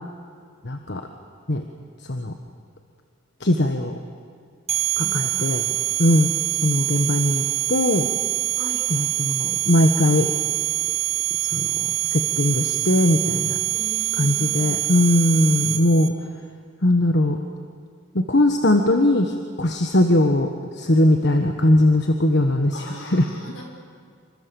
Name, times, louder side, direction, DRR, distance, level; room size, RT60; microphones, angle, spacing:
voice 1, 0.6-1.0 1.5-1.6 2.1-2.3 3.4-3.9 5.0-5.6 6.0-6.3 6.6-8.1 8.9-10.3 11.4-13.6 14.2-16.1 16.8-17.4 18.1-20.5 20.8-23.2, left 1 dB, 55° left, 5 dB, 1.4 m, -20 dB
sound 1, 4.7-16.1, right 14 dB, 30° right, 1.5 m, -25 dB
voice 2, 4.9-5.3 8.5-8.8 13.7-14.8 22.7-23.6, equal, 75° left, 1 dB, 6.1 m, -39 dB
27.5 x 25.5 x 7.2 m, 2.1 s
head